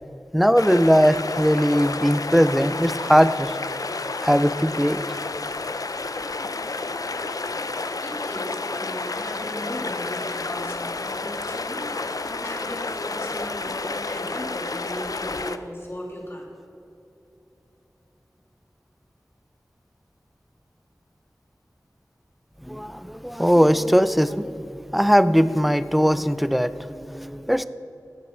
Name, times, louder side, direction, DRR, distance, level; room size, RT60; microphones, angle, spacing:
voice 1, 0.3-3.5 4.2-5.2 22.6-27.6, equal, ahead, 13 dB, 0.4 m, -20 dB
sound 1, 0.6-15.6, left 3 dB, 65° left, 0.5 m, -30 dB
voice 2, 8.0-16.4, equal, 40° left, -3 dB, 2.7 m, -36 dB
18.5 x 6.1 x 4.5 m, 2.9 s
wide cardioid pair, 50°, 6 cm